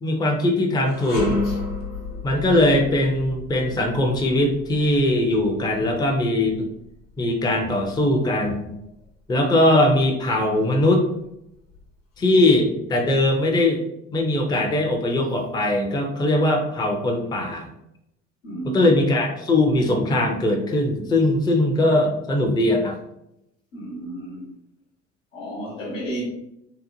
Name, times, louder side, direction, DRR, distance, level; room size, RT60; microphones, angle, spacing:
voice 1, 0.0-1.3 2.2-6.7 7.2-8.7 9.3-11.1 12.2-13.8 14.1-17.7 18.7-23.0, left 1 dB, 10° left, 1 dB, 0.5 m, -20 dB
sound 1, 0.8-10.1 10.5-10.7 11.5-12.4, left 2 dB, 55° left, 1.0 m, -33 dB
voice 2, 18.4-19.1 23.7-24.5 25.3-26.2, right 1 dB, 80° left, -4 dB, 1.1 m, -32 dB
2.9 x 2.1 x 2.6 m, 0.82 s
hypercardioid pair, 60°, 38 cm